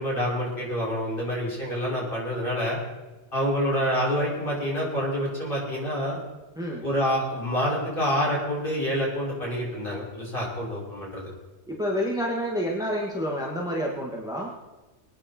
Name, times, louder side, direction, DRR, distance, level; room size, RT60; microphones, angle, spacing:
voice 1, 0.0-2.8 3.3-6.2 6.8-11.3, equal, 45° left, -5 dB, 6.4 m, -27 dB
voice 2, 11.7-14.5, equal, 5° right, -2 dB, 1.9 m, -28 dB
24.0 x 9.8 x 4.5 m, 1.2 s
omnidirectional pair, 1.3 m